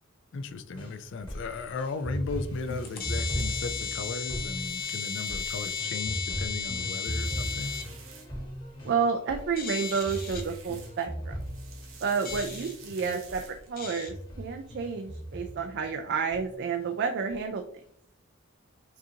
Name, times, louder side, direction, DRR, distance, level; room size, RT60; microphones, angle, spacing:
voice 1, 0.3-7.7 13.0-13.2, left 4 dB, 65° left, 11 dB, 0.4 m, -36 dB
sound 1, 0.7-12.9 13.3-13.5 13.8-15.9 16.3-16.9 17.3-17.4, equal, 25° left, 1.3 m, -38 dB
sound 2, 1.2-1.3 2.2-2.3 2.8-7.8 9.6-10.4 12.3-12.7 13.8-14.1, left 6 dB, 45° left, 0.8 m, -35 dB
sound 3, 2.2-6.1 6.5-8.7 9.5-11.1 11.4-13.9, right 6 dB, 85° right, 0.9 m, -51 dB
voice 2, 8.8-11.4 12.0-17.6, right 5 dB, 55° right, 4 dB, 0.4 m, -30 dB
5.9 x 2.6 x 2.8 m, 0.64 s
head